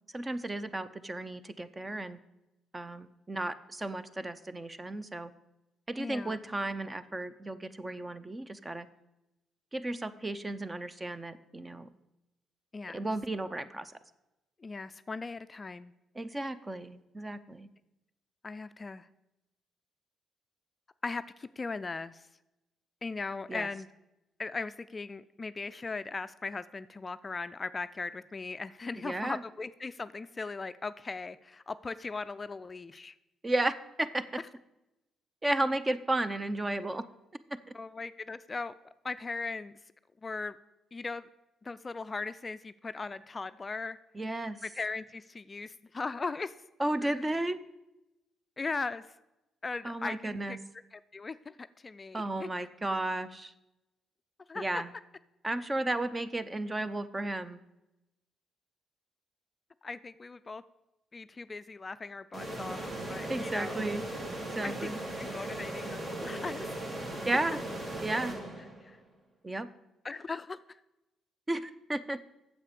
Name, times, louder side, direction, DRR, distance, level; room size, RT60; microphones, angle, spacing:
voice 1, 0.1-2.2 2.7-5.3 5.9-8.9 9.7-11.9 12.9-13.9 16.2-17.7 23.5-23.7 29.0-29.4 33.4-34.2 35.4-37.0 44.1-44.6 46.8-47.6 49.8-50.6 52.1-53.5 54.5-54.9 55.4-57.6 63.3-64.0 64.5-65.0 67.2-67.6 68.0-68.3 69.4-69.7 71.5-72.2, right 2 dB, 20° right, 13 dB, 0.6 m, -33 dB
voice 2, 6.0-6.4 12.7-13.1 14.6-15.9 18.4-19.1 21.0-22.3 23.0-23.9 24.4-33.2 37.7-38.7 39.0-39.7 40.2-40.6 40.9-41.3 41.6-44.0 44.6-46.6 47.0-47.1 48.6-49.1 49.6-50.6 50.9-52.5 54.5-54.8 59.8-60.6 61.1-63.9 64.6-66.7 68.8-69.0 70.0-70.8, left 4 dB, 30° left, 13 dB, 0.3 m, -38 dB
sound 1, 62.3-69.0, right 1 dB, 50° right, 2.3 m, -38 dB
8.4 x 7.3 x 6.8 m, 0.95 s
cardioid pair, 90°, 0 cm